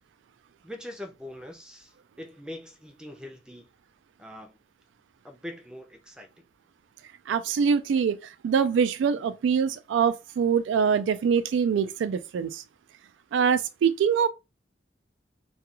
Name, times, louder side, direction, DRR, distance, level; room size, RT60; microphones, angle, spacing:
voice 1, 0.6-3.7 4.2-4.6 5.2-6.3, left 1 dB, 5° right, 0.5 m, -42 dB
voice 2, 7.3-8.2 8.4-12.6 13.3-14.3, right 6 dB, 85° right, 0.3 m, -24 dB
2.3 x 2.3 x 2.9 m
head